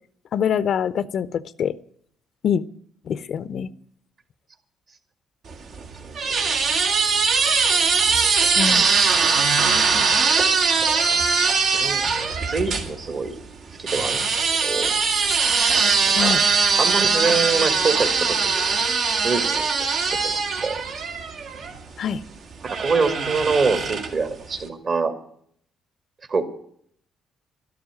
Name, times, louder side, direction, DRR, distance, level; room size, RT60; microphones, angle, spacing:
voice 1, 0.3-1.7 2.4-2.6 3.1-3.7 8.6-8.9 16.2-16.4 22.0-22.2, left 8 dB, 55° left, 16 dB, 0.6 m, -24 dB
sound 1, 5.5-12.9 13.9-21.8 22.7-24.3, right 5 dB, 65° right, 2.4 m, -21 dB
voice 2, 11.7-12.0 12.4-13.4 13.8-14.2 14.6-14.9 16.1-16.3 16.8-18.8 19.2-19.9 20.2-20.8 22.6-25.1 26.3-26.4, right 4 dB, 45° right, 9 dB, 2.1 m, -25 dB
12.5 x 12.0 x 9.1 m, 0.66 s
cardioid pair, 110°, 0 cm